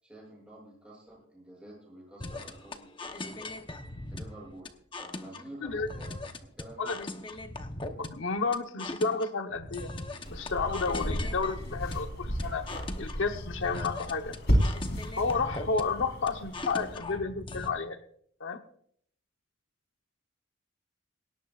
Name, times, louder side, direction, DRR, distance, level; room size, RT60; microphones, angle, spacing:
voice 1, 0.0-3.5 4.1-4.7 5.0-6.9, right 1 dB, 5° right, -2 dB, 7.4 m, -49 dB
sound 1, 2.2-17.7, left 2 dB, 25° left, 0.9 m, -40 dB
voice 2, 6.8-7.1 8.0-9.9 10.3-12.7 13.0-14.4 14.6-14.8 15.2-18.0 18.4-18.6, left 4 dB, 75° left, 6 dB, 1.0 m, -31 dB
sound 2, 10.2-17.0, equal, 55° left, 4.2 m, -33 dB
19.0 x 18.0 x 2.5 m, 0.62 s
head